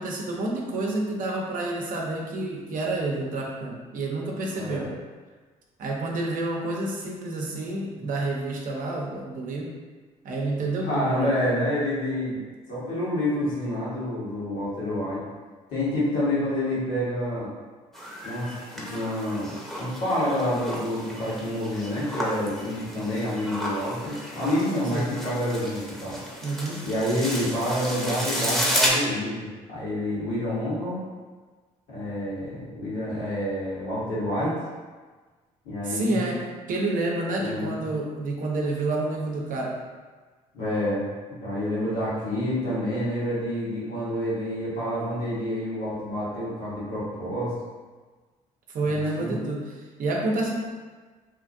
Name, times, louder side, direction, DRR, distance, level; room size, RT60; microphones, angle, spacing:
voice 1, 0.0-4.9 5.8-9.8 10.2-11.3 24.9-25.1 26.4-26.9 35.8-39.8 48.7-50.5, right 2 dB, 60° right, -1 dB, 0.6 m, -29 dB
voice 2, 4.5-4.9 10.8-12.4 12.7-15.2 15.7-17.5 18.2-26.2 26.8-31.0 31.9-34.5 35.6-36.3 37.4-38.1 40.5-41.0 41.4-47.5 48.8-49.4, left 1 dB, 75° left, -9 dB, 1.3 m, -28 dB
sound 1, 17.9-28.9, equal, ahead, 0.7 m, -32 dB
2.8 x 2.5 x 2.5 m, 1.4 s
supercardioid pair, 65°, 16 cm